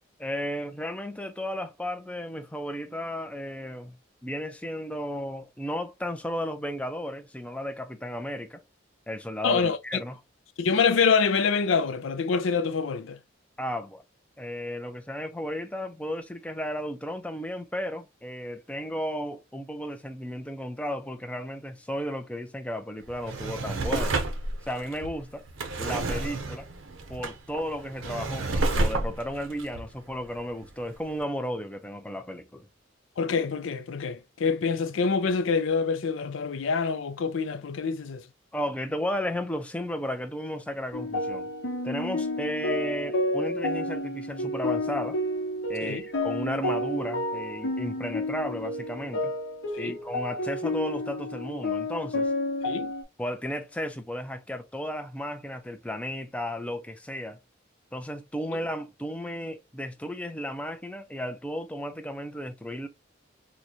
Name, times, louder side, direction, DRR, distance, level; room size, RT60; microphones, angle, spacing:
voice 1, 0.2-4.0 4.2-8.6 9.1-10.2 13.6-14.0 14.4-24.2 24.6-25.5 25.8-26.7 27.1-32.7 38.5-41.5 41.8-45.2 45.7-49.3 49.8-52.3 53.2-57.4 57.9-62.9, equal, 5° left, 0.4 m, -34 dB
voice 2, 9.4-9.8 10.6-13.2 33.2-38.2 45.8-46.0 49.7-50.0 52.6-52.9, left 5 dB, 75° left, 0.4 m, -26 dB
Drawer open or close, 23.0-30.7 31.2-31.3, right 2 dB, 80° right, 0.7 m, -30 dB
sound 1, 40.9-53.0, left 1 dB, 60° left, 0.9 m, -30 dB
3.9 x 2.2 x 2.9 m
head